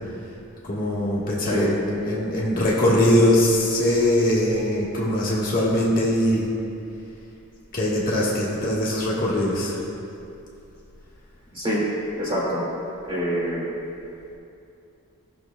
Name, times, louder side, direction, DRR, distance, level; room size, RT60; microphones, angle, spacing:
voice 1, 0.6-6.5 7.7-9.8, left 1 dB, 40° left, -6 dB, 1.4 m, -21 dB
voice 2, 12.2-12.6 13.0-13.7, equal, 25° right, -7 dB, 2.0 m, -25 dB
17.0 x 6.2 x 2.2 m, 2.7 s
head